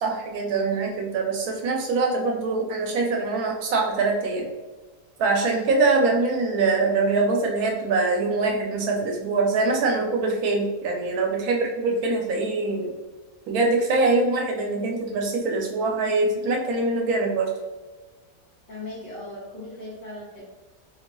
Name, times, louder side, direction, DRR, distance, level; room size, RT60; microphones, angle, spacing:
voice 1, 0.0-4.5 5.2-12.9 13.5-17.5, right 3 dB, 85° right, 1 dB, 1.1 m, -23 dB
voice 2, 18.7-20.4, left 2 dB, 40° left, -11 dB, 1.1 m, -38 dB
4.0 x 2.2 x 2.9 m, 1.2 s
omnidirectional pair, 1.5 m